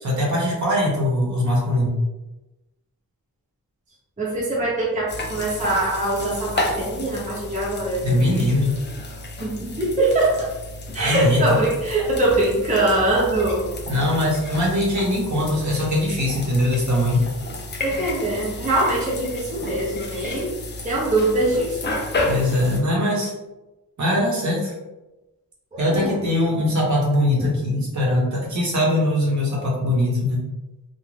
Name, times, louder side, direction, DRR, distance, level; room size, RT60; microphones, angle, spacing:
voice 1, 0.0-2.0 8.0-8.8 11.0-11.4 13.9-17.2 22.2-23.3 24.0-24.7 25.8-30.5, left 1 dB, 55° right, -3 dB, 0.8 m, -21 dB
voice 2, 4.2-8.1 9.4-10.5 10.9-13.7 17.8-20.5 20.8-21.9 25.7-26.1 27.4-27.5, right 2 dB, 20° right, -4 dB, 0.5 m, -22 dB
sound 1, 5.1-22.8, left 2 dB, 30° left, 0.4 m, -32 dB
2.4 x 2.2 x 3.1 m, 1.0 s
wide cardioid pair, 160°, 36 cm